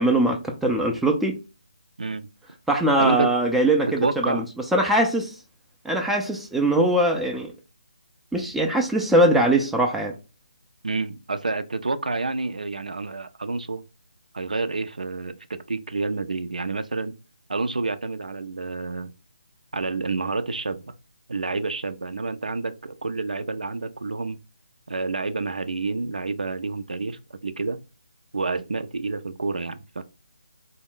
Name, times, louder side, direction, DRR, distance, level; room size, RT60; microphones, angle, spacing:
voice 1, 0.0-1.4 2.7-4.4 4.7-5.4 5.8-7.5 8.3-10.2, right 1 dB, 5° right, 0.3 m, -21 dB
voice 2, 3.0-3.3 4.0-4.4 10.8-13.8 14.3-17.1 17.5-19.1 19.7-20.8 21.3-24.4 24.9-27.8 28.3-30.0, right 3 dB, 85° right, 0.5 m, -28 dB
4.2 x 2.1 x 3.7 m
figure-of-eight pair, 160°, 4 cm